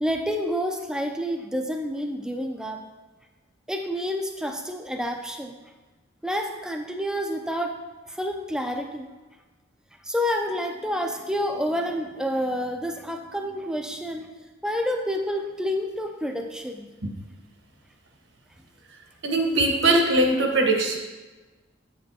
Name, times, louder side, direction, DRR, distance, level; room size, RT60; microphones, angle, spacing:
voice 1, 0.0-2.8 3.7-5.5 6.2-7.8 8.1-9.1 10.0-14.3 14.6-16.9, equal, 5° right, 4 dB, 0.5 m, -29 dB
voice 2, 19.2-21.0, right 2 dB, 70° right, 2 dB, 1.1 m, -21 dB
8.5 x 7.4 x 2.9 m, 1.2 s
head